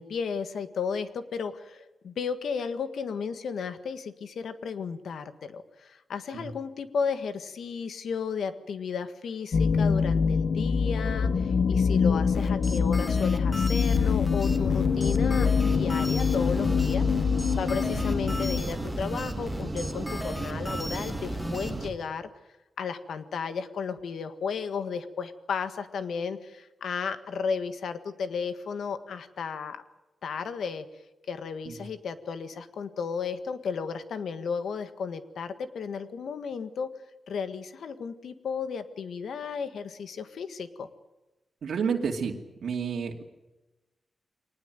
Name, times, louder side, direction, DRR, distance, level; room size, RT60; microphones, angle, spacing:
voice 1, 0.0-17.1 17.5-22.3 22.8-29.8 30.2-30.9 31.3-36.9 37.3-40.9, left 6 dB, 85° left, 10 dB, 1.7 m, -34 dB
sound 1, 9.5-18.6, left 6 dB, 65° left, 1.0 m, -24 dB
sound 2, 12.3-21.7, left 1 dB, 10° left, 2.1 m, -38 dB
sound 3, 14.5-21.9, right 2 dB, 20° right, 2.9 m, -35 dB
voice 2, 41.6-42.4 42.6-43.2, right 6 dB, 75° right, 1 dB, 2.5 m, -30 dB
24.0 x 19.5 x 9.2 m, 1.1 s
wide cardioid pair, 125°, 0 cm